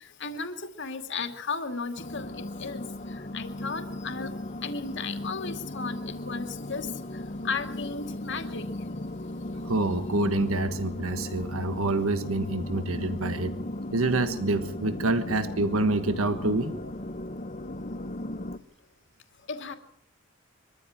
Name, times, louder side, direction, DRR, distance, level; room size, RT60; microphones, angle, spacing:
voice 1, 0.2-2.8 3.3-4.3 4.6-6.9 7.4-8.7 19.5-19.7, left 4 dB, 60° left, 7 dB, 2.4 m, -34 dB
sound 1, 2.0-18.6, left 1 dB, 35° left, 1.1 m, -36 dB
voice 2, 9.6-13.6 13.9-16.9, right 2 dB, 90° right, 9 dB, 1.4 m, -27 dB
23.5 x 14.5 x 8.9 m, 0.67 s
head